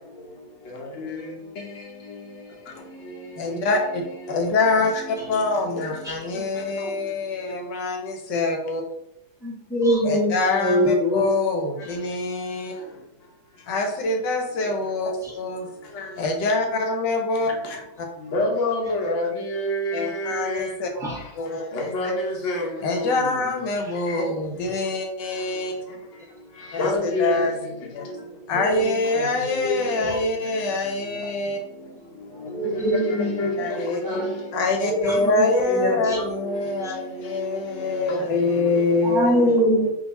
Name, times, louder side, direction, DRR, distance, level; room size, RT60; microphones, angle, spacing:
voice 1, 3.4-4.0 4.3-8.8 10.0-12.7 13.7-15.7 16.2-17.5 18.0-18.1 19.9-20.9 21.4-21.7 22.8-25.7 26.7-27.5 27.9-28.0 28.5-31.6 33.6-34.0 34.5-39.6, left 3 dB, 80° left, 1.3 m, -25 dB
voice 2, 9.4-11.3 15.2-15.3 20.9-21.2 28.6-28.9 29.4-30.2 32.5-33.4 34.0-34.3 34.8-36.2 36.8-36.9 39.0-39.9, equal, ahead, 1.2 m, -24 dB
voice 3, 18.3-20.7 21.7-22.6 26.8-27.4 32.9-33.0 33.4-33.5 34.1-34.2, left 1 dB, 50° left, 1.1 m, -25 dB
3.8 x 2.8 x 4.0 m
omnidirectional pair, 1.9 m